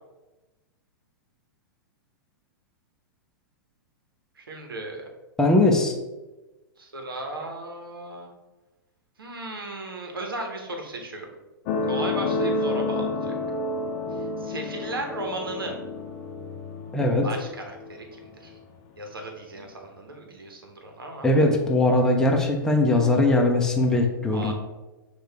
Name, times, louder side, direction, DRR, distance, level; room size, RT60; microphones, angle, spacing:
voice 1, 4.4-5.1 6.8-8.3 9.2-11.3 11.9-13.4 14.1-15.7 17.2-18.6 19.0-21.3 24.3-24.5, right 2 dB, 90° right, 3 dB, 1.0 m, -35 dB
voice 2, 5.4-5.9 16.9-17.3 21.2-24.5, left 2 dB, 5° left, 1 dB, 0.6 m, -20 dB
sound 1, 11.7-18.7 19.6-19.7, left 3 dB, 45° left, 0.6 m, -30 dB
6.3 x 2.5 x 3.4 m, 1.1 s
hypercardioid pair, 120°, 12 cm